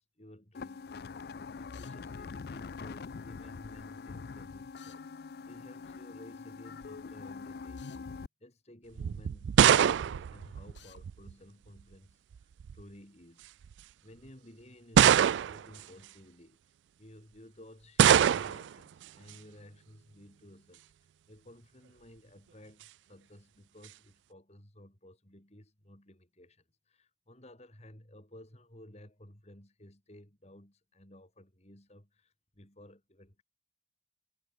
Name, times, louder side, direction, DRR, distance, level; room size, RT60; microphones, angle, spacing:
voice 1, 0.2-13.7 14.0-20.9 21.3-33.4, left 1 dB, 35° left, 4.7 m, -55 dB
sound 1, 0.5-8.3, left 4 dB, 60° left, 0.4 m, -44 dB
Drill, 1.7-2.0 4.8-5.0 7.8-8.1 10.7-11.0, left 7 dB, 85° left, 3.8 m, -56 dB
sound 2, 9.0-11.3 12.4-12.8 13.6-13.7 15.0-15.8 18.0-18.7, right 9 dB, 85° right, 0.3 m, -23 dB
head